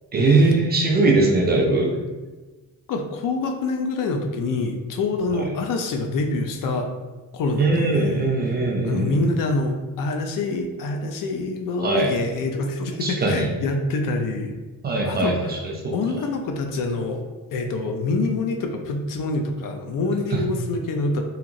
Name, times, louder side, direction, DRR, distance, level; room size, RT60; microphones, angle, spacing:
voice 1, 0.1-2.0 7.6-9.2 11.8-12.1 13.0-13.5 14.8-15.9, right 3 dB, 30° right, 0 dB, 0.4 m, -20 dB
voice 2, 2.9-6.9 7.3-8.2 8.5-8.6 8.8-14.5 15.0-15.6 15.9-17.2 17.5-21.2, left 3 dB, 65° left, 4 dB, 0.5 m, -26 dB
2.9 x 2.8 x 2.5 m, 1.2 s
cardioid pair, 150°, 35 cm